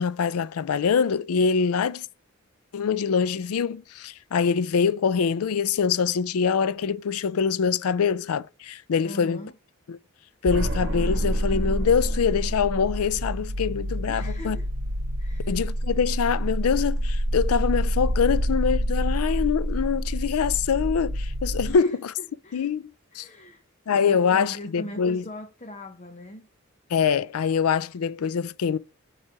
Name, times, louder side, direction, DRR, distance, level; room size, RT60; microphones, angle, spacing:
voice 1, 0.0-2.1 2.7-9.4 9.9-10.0 10.4-14.6 15.5-22.1 22.5-23.3 23.9-25.2 26.9-28.8, left 6 dB, 75° left, 0.4 m, -24 dB
voice 2, 9.0-9.5 14.1-14.7 15.2-15.6 21.7-22.7 23.1-26.5, left 1 dB, 30° left, 0.7 m, -41 dB
sound 1, 10.5-21.7, equal, 55° right, 1.3 m, -27 dB
7.3 x 3.2 x 4.7 m
head